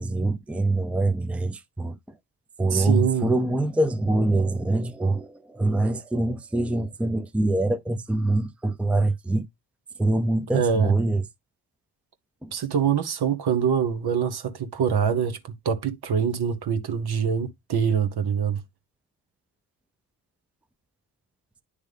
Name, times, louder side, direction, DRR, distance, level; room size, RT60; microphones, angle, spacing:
voice 1, 0.0-2.0 2.6-9.5 10.0-11.2 12.4-12.5, right 2 dB, 5° right, 0.6 m, -24 dB
voice 2, 2.7-3.3 10.5-10.9 12.5-18.6, right 7 dB, 60° right, 1.1 m, -24 dB
9.5 x 3.3 x 3.3 m
hypercardioid pair, 40°, 44 cm